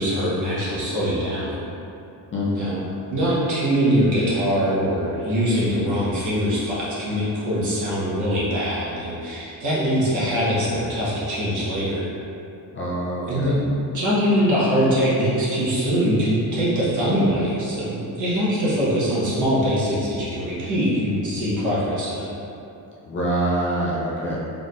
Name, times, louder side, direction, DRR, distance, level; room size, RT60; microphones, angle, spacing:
voice 1, 0.0-1.6 2.5-2.8 3.1-12.0 13.2-13.7 13.9-22.3, equal, 50° right, -9 dB, 1.4 m, -22 dB
voice 2, 2.3-2.8 12.7-13.6 23.1-24.4, right 1 dB, 30° left, -6 dB, 0.6 m, -25 dB
4.2 x 3.7 x 2.6 m, 2.8 s
cardioid pair, 140°, 39 cm